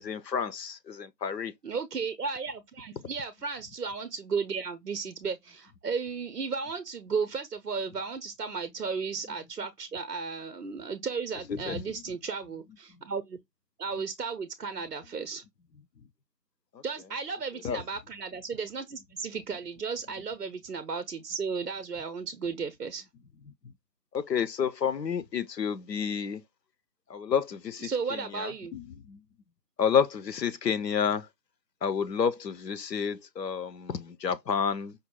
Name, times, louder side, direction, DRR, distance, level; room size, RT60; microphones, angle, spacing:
voice 1, 0.0-1.5 11.7-11.8 17.6-17.8 24.1-26.4 27.1-27.9 28.4-28.5 29.8-31.2 31.8-34.9, left 7 dB, 80° left, 0.6 m, -29 dB
voice 2, 1.6-13.4 13.8-15.4 16.8-23.0 27.8-28.7, right 5 dB, 70° right, 0.5 m, -34 dB
5.0 x 2.3 x 2.8 m
figure-of-eight pair, 180°, 50 cm